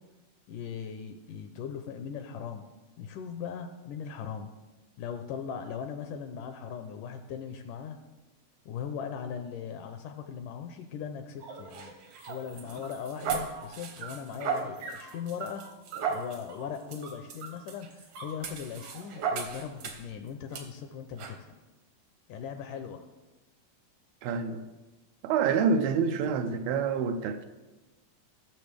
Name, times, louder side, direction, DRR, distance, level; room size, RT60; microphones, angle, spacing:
voice 1, 0.5-2.6 3.0-4.5 5.0-8.0 8.7-11.9 12.3-15.6 16.1-21.6 22.3-23.1, left 7 dB, 80° left, 7 dB, 2.0 m, -39 dB
sound 1, 11.4-20.1 20.5-20.7 21.2-21.4, right 6 dB, 65° right, 1.5 m, -37 dB
voice 2, 24.2-24.6 25.2-27.5, right 5 dB, 85° right, 8 dB, 2.6 m, -27 dB
18.5 x 6.8 x 3.4 m, 1.1 s
omnidirectional pair, 4.2 m